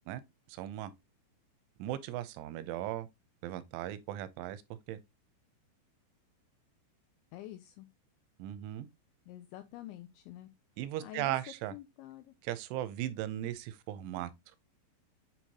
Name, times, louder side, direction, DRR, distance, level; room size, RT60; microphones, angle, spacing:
voice 1, 0.5-0.9 1.8-3.1 3.4-4.6 4.9-5.0 8.4-8.9 10.8-11.8 12.4-14.3, right 13 dB, 80° right, 3.0 m, -37 dB
voice 2, 7.3-7.9 9.3-10.5 11.0-11.4 11.7-12.3, left 14 dB, 85° left, 2.7 m, -47 dB
7.9 x 4.5 x 2.8 m
omnidirectional pair, 5.6 m